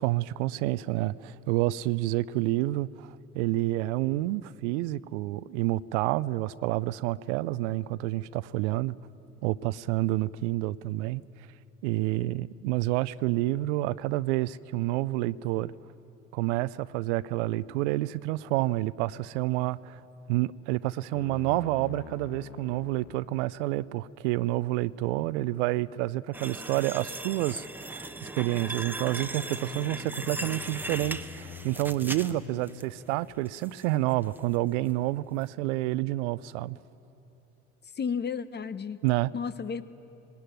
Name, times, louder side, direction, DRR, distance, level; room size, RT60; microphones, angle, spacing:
voice 1, 0.0-8.9 9.4-11.2 11.8-15.7 16.3-20.0 20.3-36.8 39.0-39.3, right 17 dB, 75° right, 0.5 m, -29 dB
sound 1, 21.1-23.5 28.8-32.8, left 7 dB, 85° left, 0.8 m, -45 dB
sound 2, 26.3-32.8 33.3-33.8 34.2-34.4 34.9-35.0, right 1 dB, 5° right, 1.0 m, -38 dB
voice 2, 37.9-39.0 39.3-39.8, left 6 dB, 30° left, 0.8 m, -32 dB
19.5 x 19.0 x 9.2 m
hypercardioid pair, 60°, 36 cm